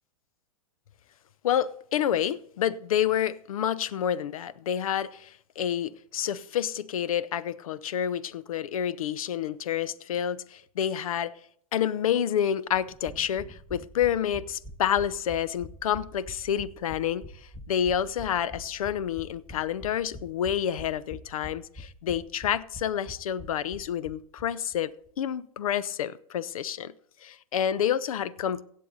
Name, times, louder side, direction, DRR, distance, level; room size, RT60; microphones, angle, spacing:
voice 1, 1.4-11.3 11.7-17.2 17.7-24.9 25.2-26.9 27.2-28.6, left 9 dB, 70° left, 0.7 m, -28 dB
sound 1, 12.7-24.5 24.7-24.8 25.1-25.2, equal, ahead, 1.1 m, -45 dB
16.0 x 7.5 x 4.0 m
hypercardioid pair, 120°, 18 cm